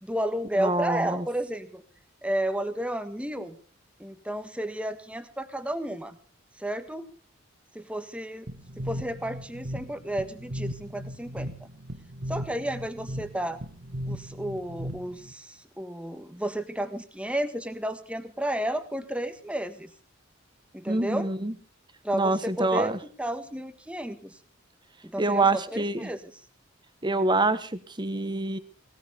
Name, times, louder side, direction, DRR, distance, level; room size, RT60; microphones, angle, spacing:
voice 1, 0.0-1.8 2.2-3.6 4.0-6.2 6.6-7.0 7.7-8.5 8.8-11.5 12.3-13.6 14.1-19.9 20.7-21.3 22.0-22.9 23.2-24.4 25.0-26.2, right 1 dB, 5° right, 10 dB, 1.5 m, -32 dB
voice 2, 0.6-1.2 20.9-21.5 22.1-23.0 25.2-26.1 27.0-27.7 28.0-28.6, right 2 dB, 20° right, 13 dB, 1.2 m, -25 dB
sound 1, 8.5-15.3, equal, 55° right, 1.7 m, -37 dB
19.0 x 18.5 x 3.5 m, 0.37 s
head